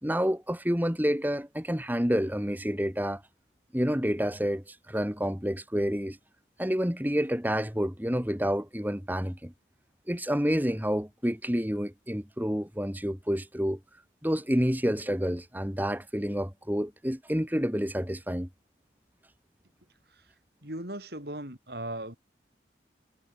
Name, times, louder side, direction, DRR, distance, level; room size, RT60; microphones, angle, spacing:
voice 1, 0.0-3.2 3.7-6.2 6.6-9.5 10.1-13.8 14.2-18.5, equal, 10° right, 2.5 m, -29 dB
voice 2, 20.6-22.2, right 1 dB, 55° right, 7.5 m, -38 dB
head